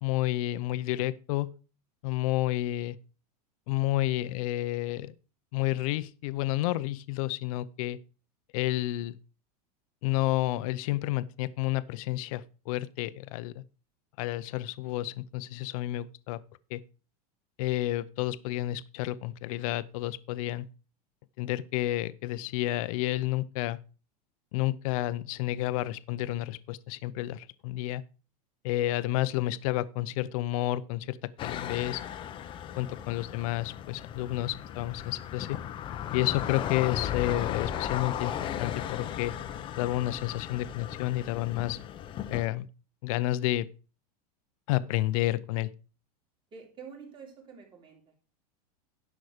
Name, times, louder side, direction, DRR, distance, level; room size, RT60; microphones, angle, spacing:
voice 1, 0.0-1.5 2.0-3.0 3.7-5.1 5.5-8.0 8.5-9.2 10.0-13.6 14.2-16.4 16.7-16.8 17.6-20.7 21.4-23.8 24.5-28.0 28.6-32.0 32.8-35.6 36.1-39.3 39.8-41.8 42.3-42.7 43.0-43.7 44.7-45.7, left 15 dB, 60° left, 0.6 m, -30 dB
sound 1, 31.4-42.5, left 10 dB, 25° left, 0.7 m, -36 dB
voice 2, 46.5-48.2, right 6 dB, 25° right, 2.9 m, -48 dB
11.0 x 6.2 x 4.9 m
supercardioid pair, 155°, 20 cm